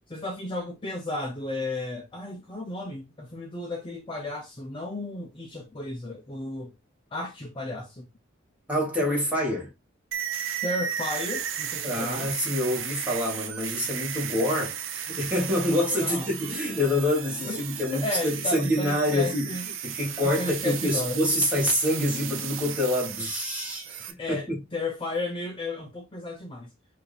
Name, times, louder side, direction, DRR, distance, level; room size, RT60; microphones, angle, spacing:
voice 1, 0.1-6.7 7.1-8.1 10.6-12.3 16.0-16.3 17.5-17.6 17.9-19.7 20.2-21.2 24.2-26.7, left 2 dB, 25° left, 0.6 m, -33 dB
voice 2, 8.7-9.7 11.8-19.5 19.8-24.6, left 1 dB, 5° right, 1.6 m, -26 dB
sound 1, 10.1-24.1, right 9 dB, 70° right, 0.6 m, -35 dB
4.7 x 2.6 x 3.3 m
head